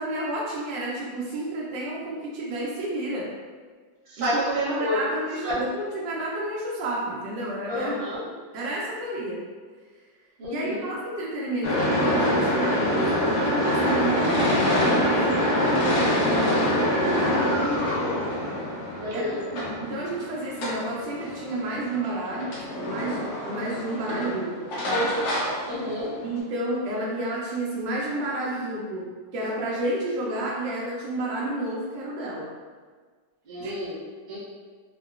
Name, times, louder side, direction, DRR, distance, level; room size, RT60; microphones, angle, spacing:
voice 1, 0.0-3.3 4.2-4.3 4.8-7.9 8.5-9.4 10.5-16.3 17.1-17.5 19.1-25.1 26.2-32.5 33.6-33.7, right 1 dB, 80° right, -4 dB, 1.2 m, -31 dB
voice 2, 4.1-5.0 5.4-5.7 7.6-8.2 10.4-10.9 17.2-18.3 19.0-19.4 25.6-26.1 33.4-34.0 34.3-34.4, equal, 50° right, -8 dB, 1.0 m, -29 dB
sound 1, 11.6-26.4, equal, 65° left, 1.1 m, -25 dB
3.7 x 2.1 x 2.3 m, 1.5 s
omnidirectional pair, 2.0 m